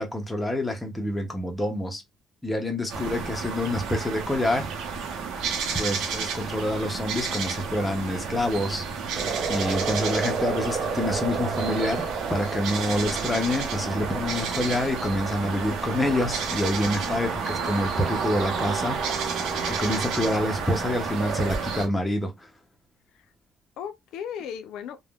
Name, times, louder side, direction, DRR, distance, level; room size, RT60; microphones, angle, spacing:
voice 1, 0.0-2.0 2.4-4.7 5.8-9.2 9.5-19.3 19.7-22.5, left 1 dB, 10° left, 0.6 m, -27 dB
sound 1, 2.9-21.9, right 5 dB, 70° right, 0.7 m, -31 dB
sound 2, 9.1-21.6, right 5 dB, 35° right, 0.5 m, -34 dB
voice 2, 16.7-17.7 23.1-23.3 23.8-25.0, left 8 dB, 80° left, 0.4 m, -38 dB
3.4 x 2.1 x 2.2 m
cardioid pair, 165°, 0 cm